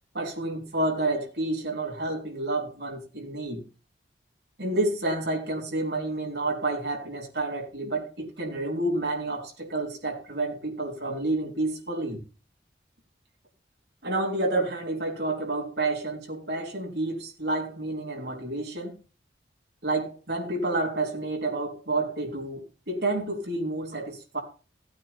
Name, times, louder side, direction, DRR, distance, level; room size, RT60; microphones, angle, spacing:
voice 1, 0.1-3.6 4.6-12.2 14.0-19.0 19.8-24.4, right 2 dB, 60° right, 0 dB, 3.8 m, -29 dB
16.5 x 9.0 x 3.6 m, 0.34 s
head